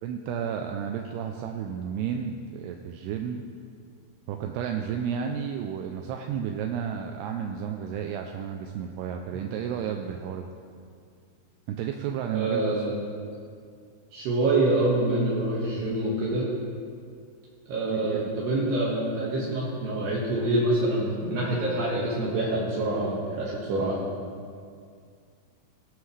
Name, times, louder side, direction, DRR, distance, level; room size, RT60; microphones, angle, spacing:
voice 1, 0.0-3.5 4.3-10.5 11.7-12.8 17.9-18.4, right 8 dB, 85° right, 3 dB, 2.4 m, -32 dB
voice 2, 12.3-12.9 14.1-16.5 17.7-24.0, right 2 dB, 65° right, -6 dB, 3.5 m, -26 dB
18.5 x 13.0 x 3.3 m, 2.2 s
omnidirectional pair, 5.3 m